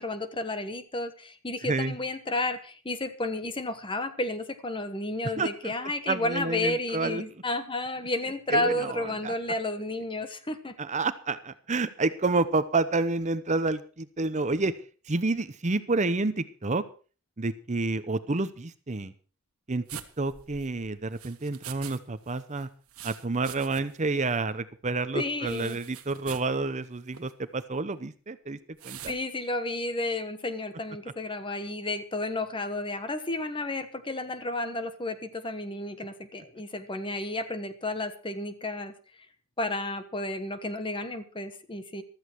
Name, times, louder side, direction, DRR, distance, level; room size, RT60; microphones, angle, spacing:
voice 1, 0.0-10.7 25.1-25.8 29.1-38.9 39.6-42.0, left 2 dB, 25° left, 10 dB, 1.3 m, -32 dB
voice 2, 1.6-1.9 5.4-5.7 6.1-7.2 8.5-9.3 10.8-14.7 15.1-16.8 17.4-19.1 19.7-19.8 20.2-22.7 23.0-28.6 28.8-29.1, right 3 dB, 35° right, 12 dB, 0.7 m, -29 dB
sound 1, 19.9-22.0 22.3-24.1 24.3-24.4 25.5-26.5 27.1-27.3 28.8-29.2, right 9 dB, 75° right, 1.5 m, -44 dB
15.0 x 13.0 x 4.6 m, 0.38 s
head